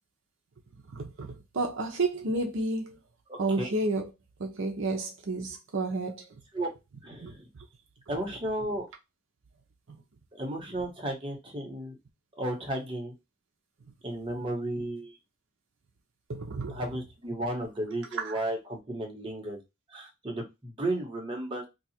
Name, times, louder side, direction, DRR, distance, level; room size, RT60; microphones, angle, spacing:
voice 1, 0.9-3.0 3.4-4.1 4.4-6.4 7.2-7.3 9.9-10.0 16.3-16.8 18.2-18.4, right 2 dB, 65° right, 0.6 m, -31 dB
voice 2, 3.3-3.7 6.5-6.7 7.0-7.5 8.1-8.9 10.3-12.0 12.4-13.1 14.0-15.2 16.7-19.6 19.9-21.7, right 1 dB, 25° right, 1.0 m, -34 dB
2.8 x 2.4 x 4.2 m
head